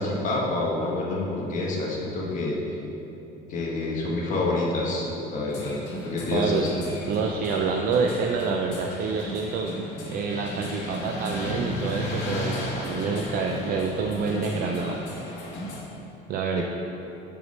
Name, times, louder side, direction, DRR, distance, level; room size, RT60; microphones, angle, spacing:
voice 1, 0.0-2.6 3.5-5.0 5.3-6.7 16.5-16.6, left 2 dB, 45° left, -4 dB, 1.4 m, -27 dB
sound 1, 5.5-15.8, left 1 dB, 75° left, 1.5 m, -34 dB
voice 2, 6.3-6.7 7.1-15.0 16.3-16.6, right 5 dB, 50° right, 2 dB, 0.4 m, -27 dB
5.0 x 4.7 x 6.3 m, 3.0 s
cardioid pair, 145°, 18 cm